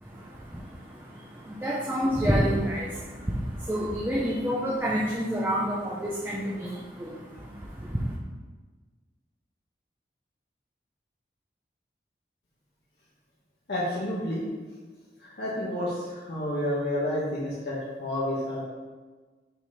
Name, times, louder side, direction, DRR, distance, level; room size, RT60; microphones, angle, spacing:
voice 1, 0.0-8.1, equal, 10° right, -5 dB, 0.6 m, -29 dB
voice 2, 13.7-14.4 15.2-18.6, left 1 dB, 80° left, -8 dB, 1.3 m, -30 dB
5.9 x 4.0 x 4.2 m, 1.3 s
head